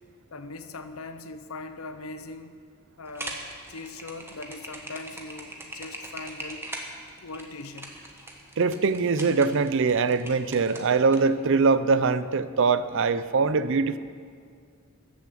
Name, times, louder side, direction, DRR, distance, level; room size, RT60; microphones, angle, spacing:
voice 1, 0.3-2.6 3.0-3.4 3.7-6.7 7.2-8.2, left 3 dB, 75° left, 9 dB, 0.8 m, -40 dB
sound 1, 3.1-11.2, right 2 dB, 10° right, 1.3 m, -40 dB
voice 2, 8.6-14.0, right 4 dB, 60° right, 14 dB, 0.5 m, -22 dB
14.5 x 7.0 x 7.5 m, 2.2 s
head